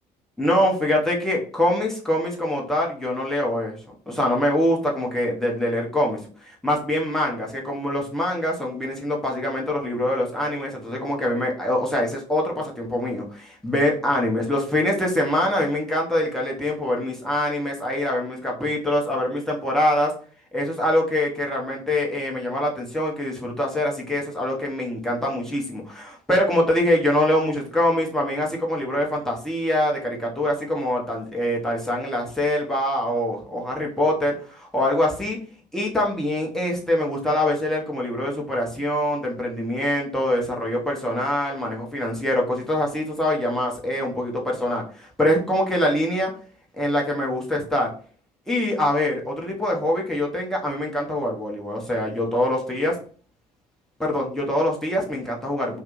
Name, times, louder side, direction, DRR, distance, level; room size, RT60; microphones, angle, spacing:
voice 1, 0.4-3.7 4.1-20.1 20.5-35.4 35.7-46.3 46.7-47.9 48.5-53.0 54.0-55.8, left 1 dB, ahead, -2 dB, 1.1 m, -24 dB
2.7 x 2.4 x 3.8 m, 0.43 s
figure-of-eight pair, 55°, 21 cm